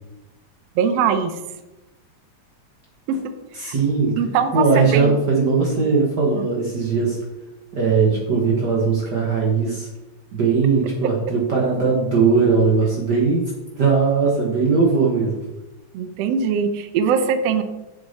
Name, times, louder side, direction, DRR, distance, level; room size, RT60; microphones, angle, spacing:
voice 1, 0.8-1.3 3.1-3.2 3.6-3.7 4.2-5.1 6.3-6.4 15.9-17.6, right 7 dB, 80° right, 9 dB, 1.4 m, -21 dB
voice 2, 3.5-4.1 4.5-7.2 7.7-9.9 10.3-15.4, right 4 dB, 60° right, -2 dB, 1.0 m, -19 dB
7.2 x 7.1 x 4.1 m, 1.0 s
omnidirectional pair, 3.6 m